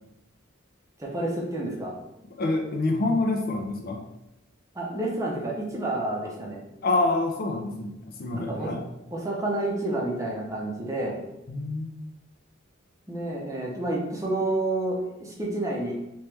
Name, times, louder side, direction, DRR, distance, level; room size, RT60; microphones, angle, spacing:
voice 1, 1.0-1.9 4.7-6.6 8.3-8.8 9.1-11.2 13.1-15.9, right 2 dB, 15° right, -2 dB, 0.6 m, -29 dB
voice 2, 2.4-4.0 6.8-7.9 8.2-8.8 11.5-11.9, left 2 dB, 45° left, 2 dB, 0.5 m, -26 dB
3.2 x 2.9 x 3.3 m, 0.88 s
head